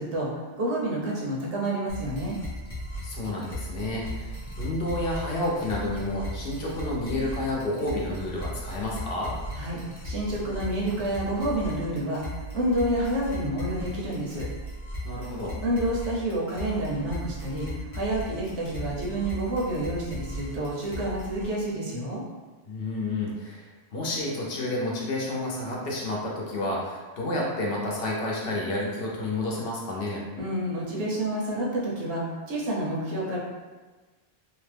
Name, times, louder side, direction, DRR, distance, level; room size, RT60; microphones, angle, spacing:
voice 1, 0.0-2.4 9.5-9.8 10.0-14.5 15.6-22.2 30.4-33.4, right 1 dB, 80° right, -4 dB, 1.0 m, -29 dB
sound 1, 1.9-21.5, equal, 40° left, 0.6 m, -37 dB
voice 2, 3.0-9.3 15.0-15.6 22.7-30.2, left 1 dB, 65° left, -3 dB, 0.8 m, -30 dB
2.8 x 2.1 x 3.2 m, 1.3 s
omnidirectional pair, 1.1 m